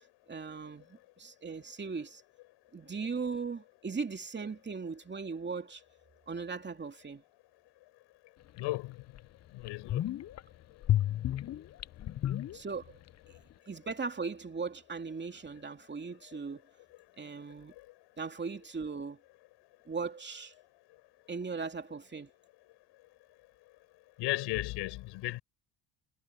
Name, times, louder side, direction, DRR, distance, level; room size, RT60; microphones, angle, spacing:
voice 1, 0.3-2.2 2.7-5.8 6.3-7.2 12.5-13.0 13.7-16.6 17.2-17.7 18.2-19.2 19.9-20.5 21.3-22.3, right 5 dB, 25° right, 2.8 m, -38 dB
voice 2, 8.6-9.0 9.5-10.0 24.2-25.4, left 20 dB, 80° left, 7.3 m, -34 dB
sound 1, 8.6-8.7 9.1-9.2 9.6-10.4 10.8-13.1 13.3-13.4, left 12 dB, 40° left, 0.7 m, -32 dB
supercardioid pair, 85°, 41 cm